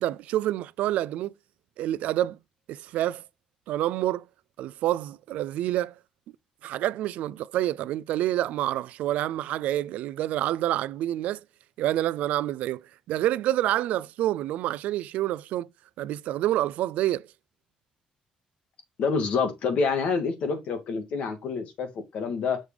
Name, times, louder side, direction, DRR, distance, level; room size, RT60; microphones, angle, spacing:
voice 1, 0.0-1.3 1.8-2.4 2.7-3.2 3.7-4.3 4.6-5.9 6.6-11.4 11.8-12.8 13.1-15.7 16.0-17.3, right 13 dB, 80° right, 0.3 m, -27 dB
voice 2, 19.0-22.6, left 5 dB, 60° left, 1.6 m, -27 dB
6.4 x 3.4 x 4.9 m
cardioid pair, 165°, 2 cm